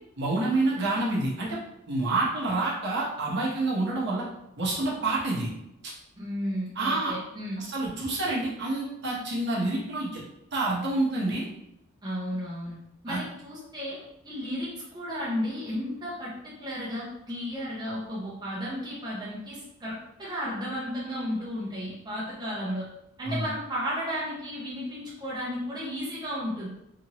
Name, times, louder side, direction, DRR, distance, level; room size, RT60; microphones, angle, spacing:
voice 1, 0.2-1.6 1.9-4.2 4.6-5.5 5.8-5.9 6.8-7.1 7.6-10.2 10.5-11.5 13.1-13.2 23.3-23.4, right 2 dB, 50° right, -5 dB, 0.8 m, -28 dB
voice 2, 6.2-7.6 12.0-12.8 13.0-22.9 23.2-26.7, equal, 20° right, -8 dB, 0.6 m, -33 dB
2.9 x 2.5 x 2.9 m, 0.84 s
head